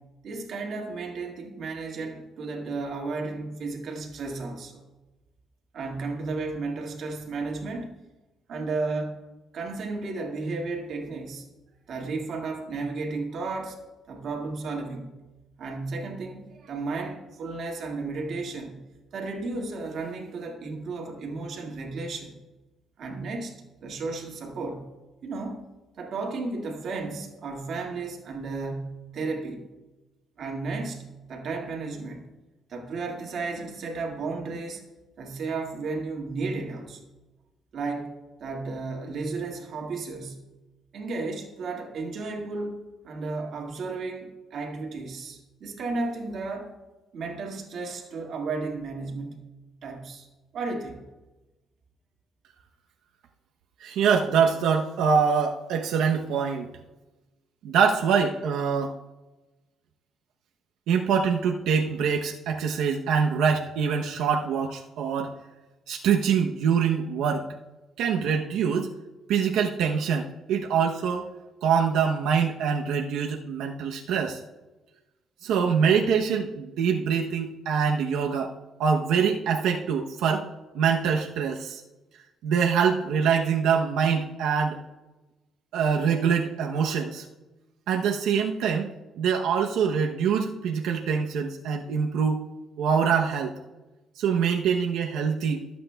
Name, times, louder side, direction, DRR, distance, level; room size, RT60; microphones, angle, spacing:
voice 1, 0.2-4.8 5.7-8.0 8.5-9.2 9.5-11.5 11.9-13.8 14.1-15.1 15.6-18.8 19.1-22.4 23.0-24.8 25.2-25.7 26.0-29.6 30.4-32.2 32.7-34.8 35.2-37.0 37.7-38.1 38.4-40.4 40.9-42.8 43.0-46.7 47.1-49.4 49.8-50.3 50.5-51.0, right 3 dB, 50° right, 1 dB, 1.9 m, -33 dB
voice 2, 53.8-56.7 57.6-58.9 60.9-65.3 65.9-67.5 68.0-68.9 69.3-71.3 71.6-74.4 75.4-78.5 78.8-80.5 80.7-81.8 82.4-84.8 85.7-87.2 87.9-92.4 92.8-93.5 94.2-95.7, right 6 dB, 85° right, 2 dB, 0.7 m, -24 dB
23.0 x 8.2 x 2.3 m, 1.1 s
cardioid pair, 150°, 0 cm